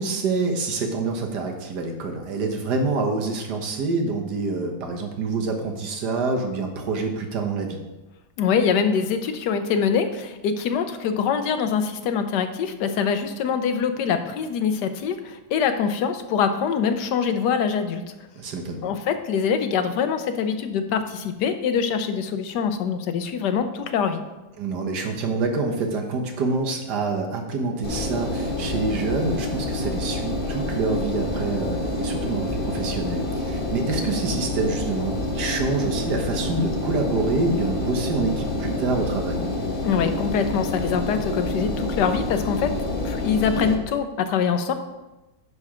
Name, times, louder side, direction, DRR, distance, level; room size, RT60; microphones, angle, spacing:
voice 1, 0.0-7.8 18.4-18.9 24.6-39.4, right 3 dB, 65° right, 2 dB, 1.7 m, -26 dB
voice 2, 8.4-18.0 18.8-24.2 39.8-42.7 43.0-44.7, left 6 dB, 70° left, 8 dB, 1.3 m, -24 dB
Engine, 27.8-43.7, left 2 dB, 35° left, 0.9 m, -28 dB
11.5 x 4.3 x 5.0 m, 1.1 s
omnidirectional pair, 2.0 m